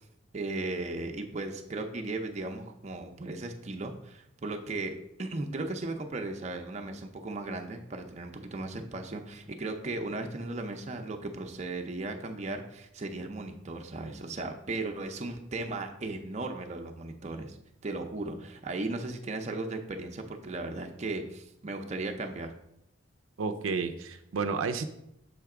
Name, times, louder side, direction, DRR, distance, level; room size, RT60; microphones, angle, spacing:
voice 1, 0.3-17.6 17.8-22.5, right 2 dB, 35° right, 4 dB, 0.5 m, -36 dB
voice 2, 23.4-24.9, right 4 dB, 90° right, 7 dB, 0.5 m, -31 dB
6.4 x 3.4 x 4.8 m, 0.78 s
head